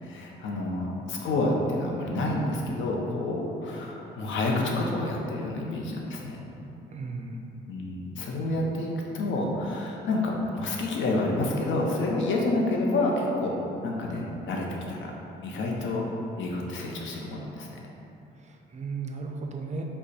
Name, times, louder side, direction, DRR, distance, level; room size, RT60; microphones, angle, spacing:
voice 1, 0.0-6.4 7.7-13.5 13.8-15.1 15.4-16.0 16.4-17.8, left 2 dB, 75° left, -1 dB, 0.7 m, -29 dB
voice 2, 6.9-7.4 18.4-19.8, right 4 dB, 35° right, 2 dB, 0.5 m, -35 dB
5.3 x 2.3 x 4.1 m, 2.8 s
cardioid pair, 90°, 20 cm